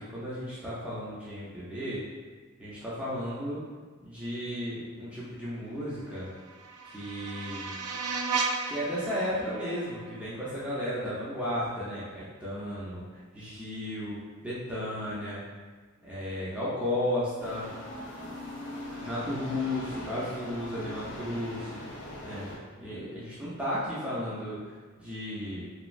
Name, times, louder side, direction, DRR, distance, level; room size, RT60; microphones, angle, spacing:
voice 1, 0.0-2.0 2.6-3.6 4.0-6.3 6.9-7.8 8.7-15.4 16.0-17.7 19.0-21.8 22.2-22.5 22.8-25.6, left 1 dB, 5° right, -9 dB, 0.5 m, -34 dB
sound 1, 6.1-11.1, right 4 dB, 90° right, 0.3 m, -35 dB
sound 2, 17.4-22.6, left 1 dB, 55° left, 0.6 m, -41 dB
3.0 x 2.3 x 2.5 m, 1.5 s
head